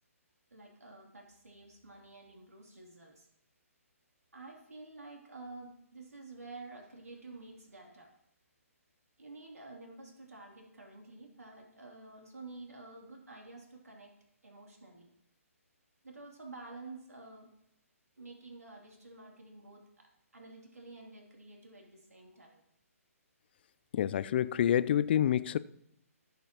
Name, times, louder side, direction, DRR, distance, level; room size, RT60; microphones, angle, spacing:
voice 1, 0.5-3.3 4.3-8.1 9.2-14.1 14.4-15.1 16.0-17.5 18.2-19.8 20.3-22.6, right 3 dB, 85° right, 3.0 m, -50 dB
voice 2, 23.9-25.6, left 10 dB, 45° left, 0.4 m, -27 dB
17.0 x 6.8 x 3.0 m
figure-of-eight pair, 135°, 8 cm